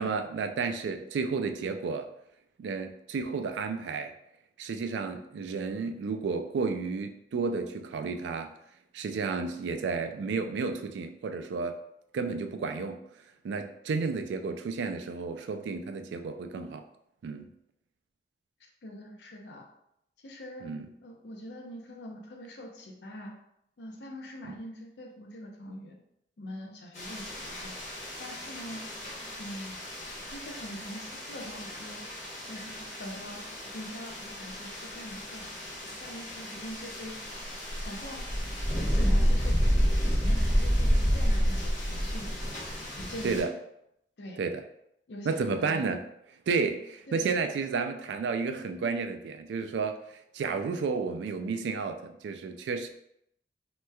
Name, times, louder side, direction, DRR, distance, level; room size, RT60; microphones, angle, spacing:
voice 1, 0.0-2.1 2.6-4.1 4.6-8.5 8.9-11.8 12.1-13.0 13.4-16.8 17.2-17.5 20.6-20.9 43.2-43.5 44.4-44.6 45.3-46.0 46.5-50.0 50.3-52.9, right 4 dB, 90° right, 7 dB, 0.3 m, -32 dB
voice 2, 18.6-19.7 20.2-20.7 21.0-23.3 23.8-26.0 26.4-27.8 28.2-28.9 29.4-29.8 30.3-32.1 32.5-33.5 33.7-35.5 35.8-37.2 37.8-38.3 38.9-42.4 43.0-43.4 44.2-44.4 45.1-45.9 47.1-47.3, left 1 dB, 80° left, 2 dB, 0.6 m, -43 dB
sound 1, 26.9-43.4, equal, 40° left, 1.2 m, -30 dB
3.2 x 3.0 x 2.2 m, 0.77 s
head